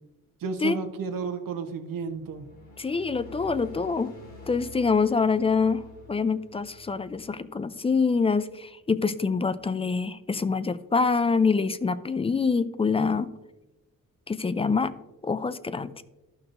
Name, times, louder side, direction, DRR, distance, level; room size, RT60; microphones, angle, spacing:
voice 1, 0.4-2.5, right 5 dB, 70° right, 7 dB, 1.0 m, -32 dB
sound 1, 1.9-8.5, left 1 dB, 50° left, 2.9 m, -48 dB
voice 2, 2.8-4.1 4.5-13.3 14.3-14.9 15.2-16.0, left 4 dB, 20° left, 15 dB, 0.3 m, -25 dB
14.0 x 5.8 x 2.6 m, 1.0 s
cardioid pair, 105°, 35 cm